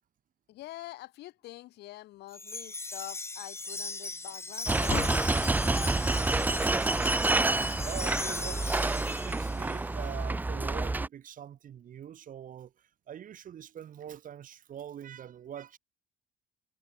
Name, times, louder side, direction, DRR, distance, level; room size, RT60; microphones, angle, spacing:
voice 1, 0.5-5.0, left 16 dB, 80° left, 4.2 m, -46 dB
Wind chime, 2.3-9.8, left 3 dB, 15° left, 2.2 m, -38 dB
sound 1, 4.7-11.1, right 2 dB, 10° right, 0.5 m, -28 dB
sound 2, 4.8-5.5 6.5-7.1 7.7-7.8 9.1-9.8, left 11 dB, 60° left, 6.0 m, -41 dB
voice 2, 5.4-5.9 6.1-6.4 6.8-6.9 7.2-12.7 13.1-15.8, right 9 dB, 50° right, 4.5 m, -44 dB
cardioid pair, 110°, 17 cm